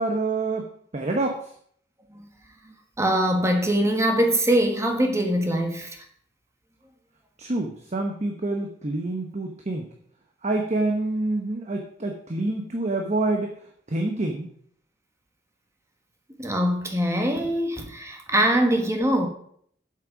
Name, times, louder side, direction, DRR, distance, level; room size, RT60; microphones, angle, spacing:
voice 1, 0.0-1.5 7.4-9.9 10.4-13.6 13.9-14.5, right 2 dB, 40° right, 0.9 m, -27 dB
voice 2, 2.6-6.0 16.4-19.3, right 1 dB, 15° right, 1.4 m, -23 dB
7.6 x 7.3 x 5.2 m
head